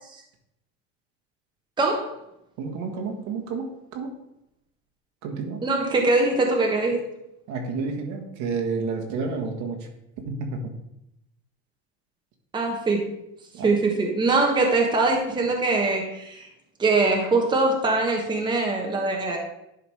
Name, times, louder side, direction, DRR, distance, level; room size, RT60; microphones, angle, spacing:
voice 1, 1.8-2.1 5.6-7.0 12.5-13.1 13.6-16.5 16.8-19.4, right 3 dB, 15° right, 1 dB, 1.2 m, -22 dB
voice 2, 2.6-4.1 5.2-5.6 7.5-9.9 10.3-10.7 13.5-13.7, right 4 dB, 60° right, 3 dB, 1.7 m, -30 dB
11.0 x 3.8 x 4.8 m, 0.82 s
cardioid pair, 140°, 31 cm